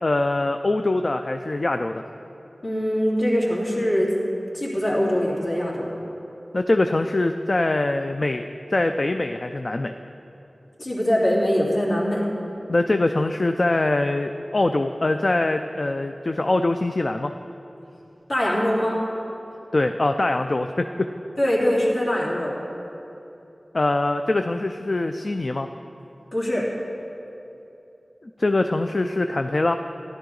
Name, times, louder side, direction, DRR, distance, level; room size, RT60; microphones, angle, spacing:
voice 1, 0.0-2.0 6.5-8.5 8.7-9.9 12.7-17.3 19.7-20.9 23.7-25.7 28.4-29.7, left 2 dB, 50° left, 7 dB, 0.4 m, -23 dB
voice 2, 2.6-4.1 4.5-5.9 10.8-12.2 18.3-19.0 21.4-22.5 26.3-26.6, equal, 70° left, -6 dB, 2.8 m, -22 dB
14.0 x 11.0 x 3.9 m, 2.8 s
wide cardioid pair, 60°, 0 cm